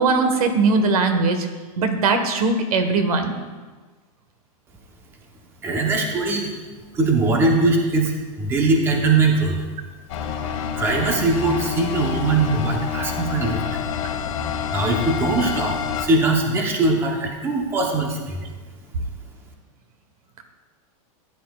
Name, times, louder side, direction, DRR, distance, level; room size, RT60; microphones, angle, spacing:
voice 1, 0.0-1.5 1.8-3.4, right 4 dB, 90° right, 7 dB, 1.4 m, -20 dB
voice 2, 5.6-6.5 7.0-9.6 10.8-13.6 14.7-15.7 16.0-18.4, right 3 dB, 15° right, 1 dB, 0.9 m, -21 dB
sound 1, 10.1-16.1, left 7 dB, 60° left, 1.5 m, -28 dB
15.0 x 10.5 x 2.4 m, 1.4 s
supercardioid pair, 175°, 18 cm